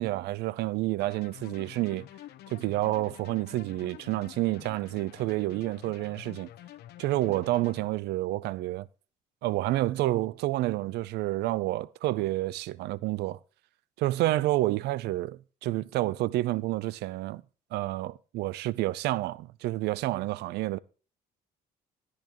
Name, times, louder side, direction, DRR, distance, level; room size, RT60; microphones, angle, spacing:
voice 1, 0.0-2.1 2.5-6.5 7.0-8.9 9.4-13.4 14.0-17.4 17.7-20.8, right 17 dB, 80° right, 0.6 m, -29 dB
sound 1, 1.0-7.9, left 13 dB, 75° left, 1.0 m, -48 dB
14.0 x 9.8 x 3.1 m
cardioid pair, 110°, 17 cm